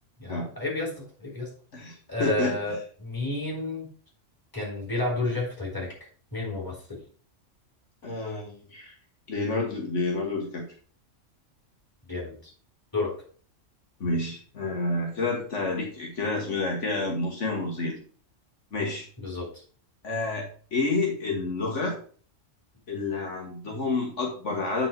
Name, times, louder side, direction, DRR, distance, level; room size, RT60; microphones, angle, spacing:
voice 1, 0.2-1.5 2.1-3.9 4.5-5.9 6.3-7.0 12.1-12.5 12.9-13.1 19.2-19.6, left 2 dB, 15° left, -4 dB, 3.6 m, -31 dB
voice 2, 1.7-2.5 8.0-8.9 9.3-10.6 14.0-18.0 18.7-19.1 20.0-20.5 20.7-22.0 22.9-24.9, left 3 dB, 75° left, -1 dB, 1.9 m, -29 dB
8.8 x 4.1 x 4.6 m, 0.43 s
omnidirectional pair, 1.3 m